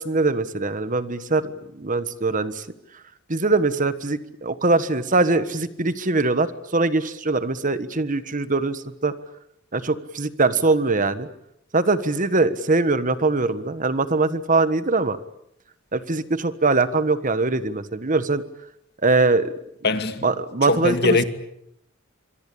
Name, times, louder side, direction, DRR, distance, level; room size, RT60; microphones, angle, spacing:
voice 1, 0.0-2.7 3.3-9.1 9.7-11.3 11.7-15.2 15.9-18.4 19.0-19.5 20.2-21.2, right 3 dB, 40° right, 1.4 m, -22 dB
voice 2, 19.8-20.3 20.7-21.2, left 3 dB, 55° left, 2.1 m, -21 dB
26.0 x 22.5 x 8.7 m
head